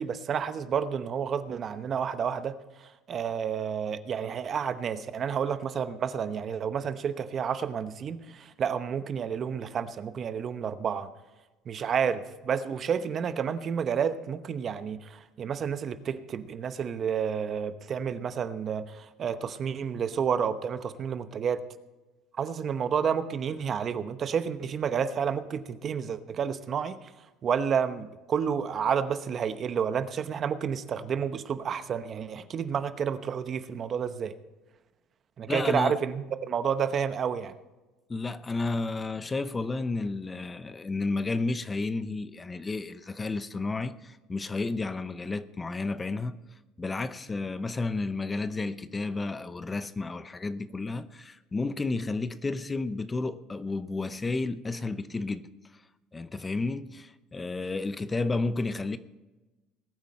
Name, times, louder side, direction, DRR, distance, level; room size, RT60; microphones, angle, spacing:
voice 1, 0.0-2.5 3.1-11.1 11.7-21.6 22.4-27.0 27.4-34.3 35.4-37.5, right 7 dB, 45° right, 0.9 m, -30 dB
voice 2, 35.5-36.0 38.1-46.4 46.8-55.5 55.7-55.8 56.1-59.0, left 3 dB, 20° left, 0.7 m, -32 dB
20.0 x 8.9 x 4.3 m
supercardioid pair, 90°, 0 cm